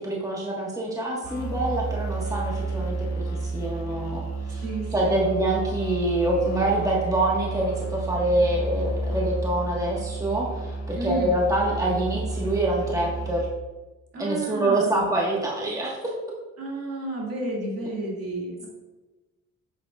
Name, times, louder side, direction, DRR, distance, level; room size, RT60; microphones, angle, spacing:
voice 1, 0.0-3.1 3.4-4.6 4.9-13.5 14.2-16.1, right 1 dB, 10° right, -3 dB, 1.5 m, -26 dB
sound 1, 1.2-13.4, right 3 dB, 60° left, 1.3 m, -31 dB
voice 2, 4.6-5.4 10.9-11.4 11.9-12.0 14.1-15.0 16.6-18.7, right 2 dB, 50° right, -2 dB, 2.2 m, -31 dB
7.9 x 7.6 x 2.4 m, 1.2 s
cardioid pair, 90°, 30 cm